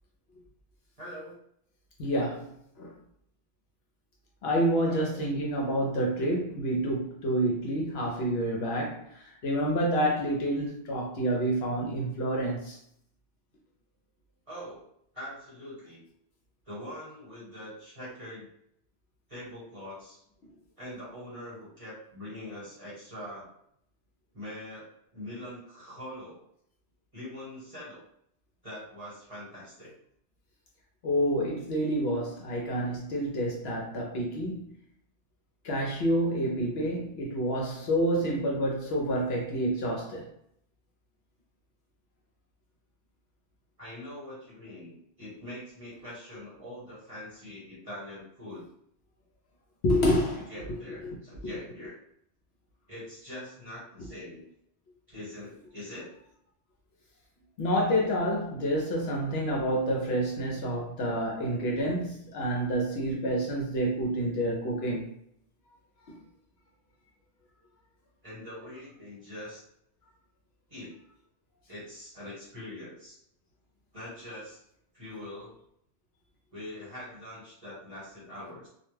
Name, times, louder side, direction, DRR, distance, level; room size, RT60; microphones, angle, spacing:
voice 1, 1.0-1.4 4.9-5.3 8.8-8.9 14.5-14.9 15.1-16.0 16.7-18.5 19.3-20.2 20.8-23.5 24.3-26.4 27.1-28.0 28.6-29.9 43.8-48.7 50.5-52.0 52.9-54.4 55.1-56.1 68.2-69.6 70.7-71.0 71.7-73.2 73.9-74.6 74.9-75.5 76.5-78.7, left 1 dB, 30° right, -8 dB, 1.2 m, -43 dB
voice 2, 2.0-2.5 2.8-2.9 4.4-12.8 31.0-34.7 35.6-40.3 49.8-50.5 51.0-51.2 57.6-65.1, equal, 65° left, -1 dB, 0.8 m, -28 dB
2.2 x 2.2 x 3.2 m, 0.69 s
omnidirectional pair, 1.2 m